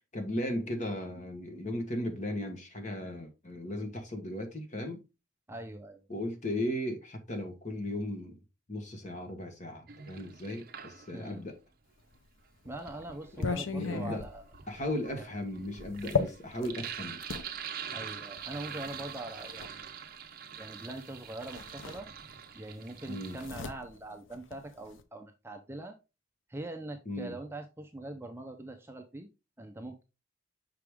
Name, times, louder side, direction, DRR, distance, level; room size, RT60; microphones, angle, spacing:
voice 1, 0.1-5.0 6.1-8.4 8.7-11.6 13.4-14.2 14.7-17.2 23.1-23.4 27.1-27.4, left 1 dB, 35° left, 1.3 m, -36 dB
voice 2, 5.5-6.0 11.1-11.4 12.6-14.4 15.2-15.3 17.9-19.9 20.6-22.1 22.5-26.0 26.5-29.3 29.6-30.0, right 1 dB, 10° right, 0.5 m, -42 dB
Sink (filling or washing), 9.9-11.4 12.6-23.5, right 8 dB, 45° right, 0.7 m, -44 dB
sound 1, 12.1-17.5 18.4-19.7 21.0-21.1 21.4-22.5 22.8-25.0, left 4 dB, 75° left, 0.7 m, -37 dB
5.9 x 4.8 x 3.5 m
head